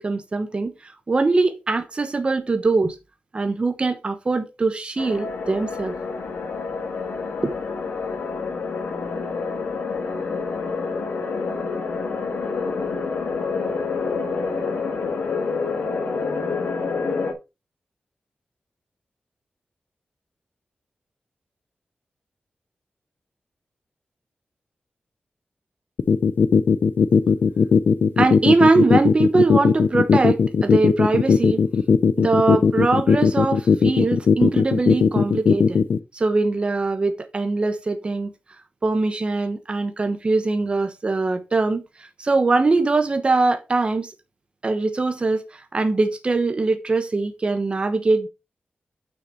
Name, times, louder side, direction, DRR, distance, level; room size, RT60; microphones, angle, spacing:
voice 1, 0.0-3.0 3.3-6.0 7.4-7.5 28.2-31.6 32.2-35.8 36.1-38.3 38.8-44.1 44.6-48.3, right 3 dB, 35° right, 1.0 m, -22 dB
sound 1, 5.0-17.3, left 4 dB, 90° left, 1.9 m, -27 dB
sound 2, 26.0-36.0, left 6 dB, 75° left, 0.6 m, -17 dB
6.5 x 6.4 x 4.6 m
wide cardioid pair, 130°, 3 cm